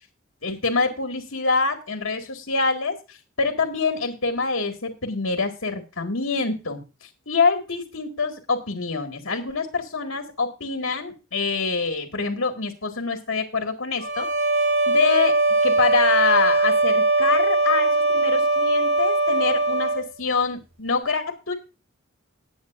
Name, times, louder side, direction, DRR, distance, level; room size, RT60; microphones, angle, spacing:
voice 1, 0.4-6.8 7.3-14.3 14.9-15.3 15.6-21.5, left 4 dB, 85° left, 4 dB, 2.0 m, -25 dB
sound 1, 14.0-20.1, right 2 dB, 70° right, 2.9 m, -21 dB
19.0 x 8.6 x 2.6 m, 0.30 s
head